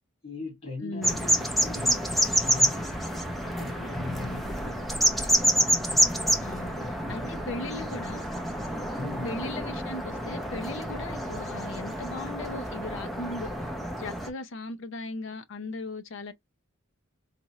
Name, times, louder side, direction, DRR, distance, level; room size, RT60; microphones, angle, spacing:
voice 1, 0.2-2.1 2.4-5.4 6.8-7.7 8.9-9.4, left 2 dB, 40° left, 2.1 m, -41 dB
voice 2, 0.8-1.3 4.2-4.6 6.4-6.7 7.1-8.3 9.2-13.7 14.0-16.3, left 3 dB, 60° left, 0.6 m, -38 dB
sound 1, 1.0-14.3, equal, ahead, 0.7 m, -28 dB
4.2 x 2.4 x 3.0 m
head